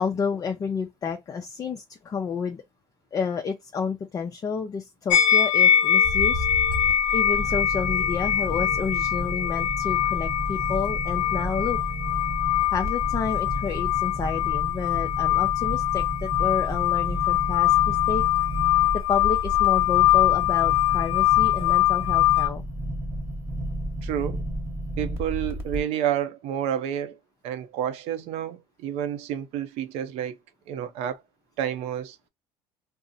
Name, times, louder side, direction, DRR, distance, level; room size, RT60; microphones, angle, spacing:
voice 1, 0.0-2.6 3.1-6.5 7.1-11.8 12.7-18.2 19.1-22.6, left 5 dB, 35° left, 0.5 m, -30 dB
sound 1, 5.1-22.5, left 11 dB, 85° left, 0.4 m, -23 dB
sound 2, 6.0-25.8, equal, 20° right, 1.1 m, -32 dB
voice 2, 24.0-24.4 25.0-27.2 27.4-30.4 30.7-31.2 31.6-32.2, right 10 dB, 65° right, 0.5 m, -29 dB
2.6 x 2.0 x 3.8 m
supercardioid pair, 90°, 11 cm